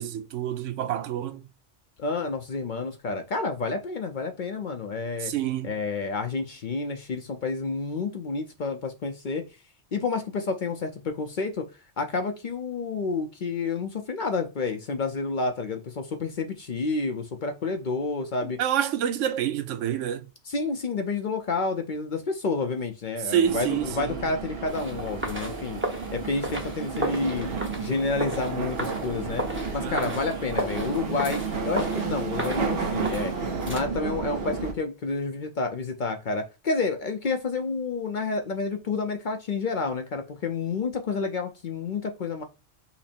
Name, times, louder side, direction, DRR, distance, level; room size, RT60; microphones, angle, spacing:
voice 1, 0.0-1.4 5.2-5.7 18.4-20.3 23.2-24.2 29.8-30.1, right 10 dB, 90° right, 1.0 m, -27 dB
voice 2, 2.0-5.3 5.6-9.4 9.9-11.7 12.0-18.6 20.4-25.8 26.1-27.5 27.8-42.4, left 4 dB, 50° left, 0.6 m, -29 dB
sound 1, 23.4-34.7, right 4 dB, 60° right, 1.1 m, -32 dB
sound 2, 24.6-33.8, equal, 10° right, 0.7 m, -35 dB
5.7 x 2.0 x 4.2 m
omnidirectional pair, 1.2 m